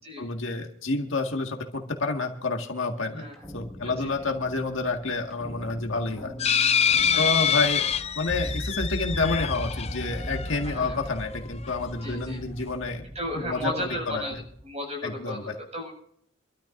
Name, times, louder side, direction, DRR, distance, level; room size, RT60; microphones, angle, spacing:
voice 1, 0.2-3.3 3.5-6.3 7.1-7.9 8.2-13.1 13.3-14.4 15.0-15.5, left 3 dB, 65° left, 3 dB, 1.9 m, -29 dB
Toppling Strings, 3.3-14.6, equal, 5° left, 1.8 m, -38 dB
sound 1, 6.4-11.0 11.6-11.7 12.0-12.1, left 8 dB, 30° left, 0.5 m, -26 dB
voice 2, 7.1-7.6 10.6-11.0 12.0-12.4 13.1-14.3 14.6-16.0, left 1 dB, 30° right, 0 dB, 6.7 m, -35 dB
26.0 x 13.0 x 2.6 m, 0.66 s
head